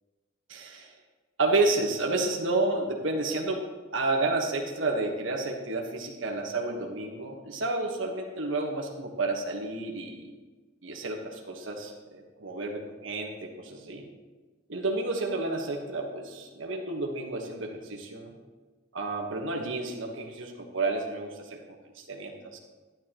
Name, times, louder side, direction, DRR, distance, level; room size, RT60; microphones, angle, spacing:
voice 1, 0.5-0.9 1.4-3.6 3.9-10.2 10.8-14.0 14.7-18.3 18.9-21.6 22.0-22.6, right 2 dB, 75° right, 2 dB, 1.3 m, -30 dB
11.5 x 9.1 x 3.0 m, 1.3 s
head